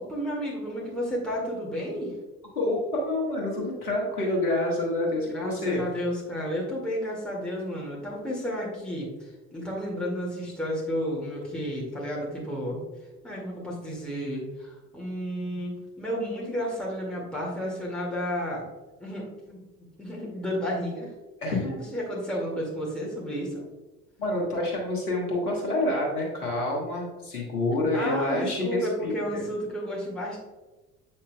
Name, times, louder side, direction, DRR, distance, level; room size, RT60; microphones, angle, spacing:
voice 1, 0.0-2.1 5.3-12.8 13.2-18.6 19.0-19.6 20.0-21.1 21.9-23.6 27.7-30.4, equal, ahead, -4 dB, 2.1 m, -32 dB
voice 2, 2.5-5.8 21.4-21.9 24.2-29.4, left 2 dB, 85° left, -2 dB, 1.4 m, -28 dB
7.8 x 5.7 x 2.3 m, 1.2 s
figure-of-eight pair, 55°, 44 cm